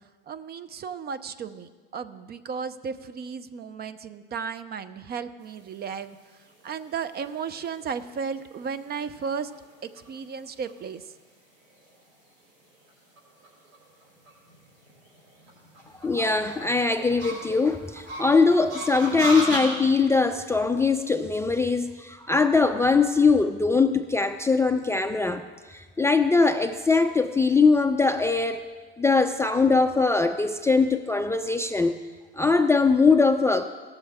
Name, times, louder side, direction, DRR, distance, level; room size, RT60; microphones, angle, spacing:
voice 1, 0.3-6.2 6.6-9.5 9.8-11.0, right 6 dB, 35° right, 12 dB, 0.7 m, -34 dB
sound 1, 5.7-19.6, right 1 dB, 75° right, 3.7 m, -38 dB
voice 2, 16.0-25.4 25.7-28.6 29.0-31.9 32.4-33.6, left 4 dB, 10° left, 6 dB, 0.4 m, -21 dB
18.0 x 6.7 x 3.6 m, 1.4 s
hypercardioid pair, 80°, 29 cm